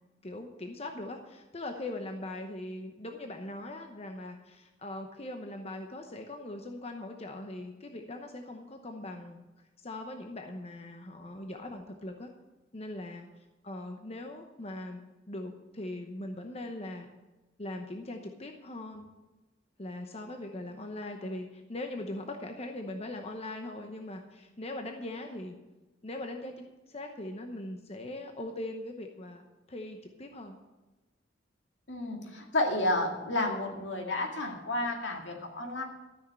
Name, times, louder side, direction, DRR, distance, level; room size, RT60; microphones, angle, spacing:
voice 1, 0.2-9.4 9.8-12.3 12.7-13.3 13.6-15.0 15.3-17.1 17.6-19.1 19.8-25.6 26.0-30.6, left 1 dB, 35° left, 4 dB, 0.9 m, -40 dB
voice 2, 31.9-35.8, left 2 dB, 75° left, 2 dB, 2.2 m, -31 dB
13.0 x 6.4 x 8.3 m, 1.1 s
head